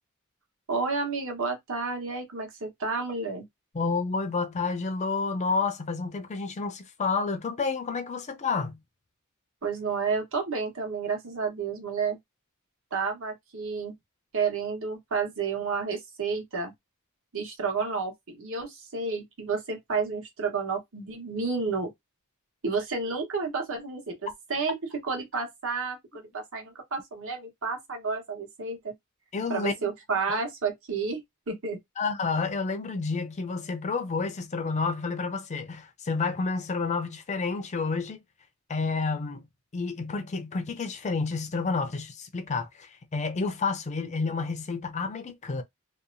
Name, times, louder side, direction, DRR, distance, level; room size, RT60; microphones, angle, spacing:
voice 1, 0.7-3.5 9.6-12.2 12.9-13.9 14.3-16.7 17.3-21.9 22.6-24.7 25.0-28.9 29.5-31.8, right 4 dB, 70° right, 1.1 m, -31 dB
voice 2, 3.7-8.8 29.3-29.9 32.0-38.2 38.7-39.4 39.7-45.6, left 4 dB, 35° left, 0.4 m, -30 dB
2.8 x 2.1 x 2.5 m
head